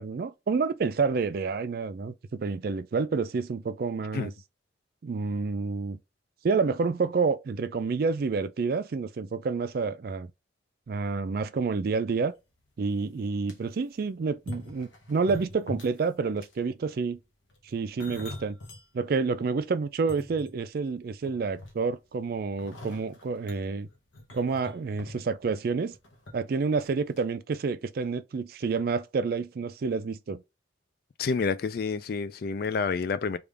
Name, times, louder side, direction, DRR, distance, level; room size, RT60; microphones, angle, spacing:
voice 1, 0.0-4.3 5.0-6.0 6.4-10.3 10.9-12.3 12.8-17.2 17.6-18.6 18.9-23.9 24.3-25.9 26.3-30.4, right 4 dB, 50° right, 0.4 m, -29 dB
sound 1, 12.6-12.7 13.2-13.6 14.3-16.1 16.4-16.7 17.5-18.9 19.3-19.4 19.9-20.9 21.3-22.0 22.6-26.3 26.6-26.9 27.2-27.3, left 1 dB, 85° left, 0.9 m, -43 dB
voice 2, 31.2-33.4, left 5 dB, 50° left, 0.3 m, -29 dB
3.4 x 2.4 x 3.3 m
head